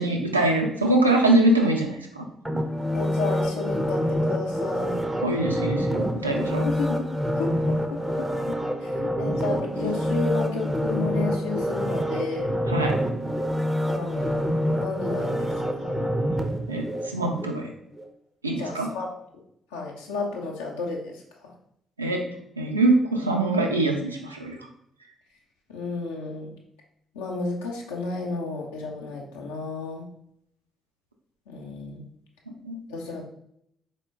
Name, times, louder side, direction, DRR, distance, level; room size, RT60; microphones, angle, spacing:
voice 1, 0.0-2.3 5.2-6.7 12.7-13.0 16.7-17.7 18.4-18.9 22.0-22.2 22.6-24.6 32.6-32.8, right 2 dB, 85° right, 1 dB, 0.4 m, -23 dB
sound 1, 2.4-17.5 17.9-18.0, equal, 10° right, 0.5 m, -27 dB
voice 2, 2.9-5.0 6.6-7.5 8.2-8.9 9.2-12.5 13.9-14.4 14.7-15.5 15.8-16.1 18.6-19.1 19.7-21.1 25.7-26.5 27.1-30.1 31.5-32.0 32.9-33.2, left 4 dB, 75° left, -1 dB, 0.6 m, -32 dB
4.2 x 2.1 x 3.5 m, 0.74 s
figure-of-eight pair, 40°, 0 cm